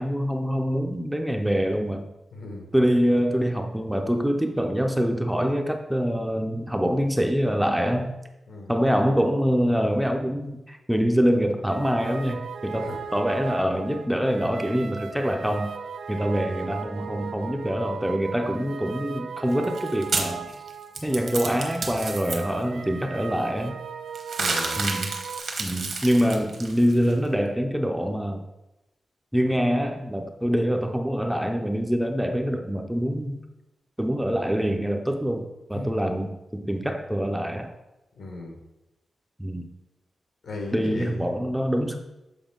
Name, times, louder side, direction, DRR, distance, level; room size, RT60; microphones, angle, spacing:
voice 1, 0.0-2.1 2.7-8.1 8.7-15.7 16.1-20.5 21.0-23.8 24.8-25.1 25.6-28.4 29.3-33.4 34.0-37.7 39.4-39.7 40.7-42.0, equal, 5° right, 4 dB, 0.5 m, -25 dB
voice 2, 2.3-2.6 8.5-8.7 12.8-13.0 24.4-24.9 35.7-35.9 38.2-38.6 40.4-41.3, left 2 dB, 80° left, 1 dB, 1.6 m, -36 dB
sound 1, 11.7-25.4, right 6 dB, 85° right, 0.5 m, -37 dB
sound 2, 19.5-22.3 24.2-27.1, right 4 dB, 60° right, 1.1 m, -30 dB
7.0 x 4.6 x 3.8 m, 0.96 s
wide cardioid pair, 150°, 0 cm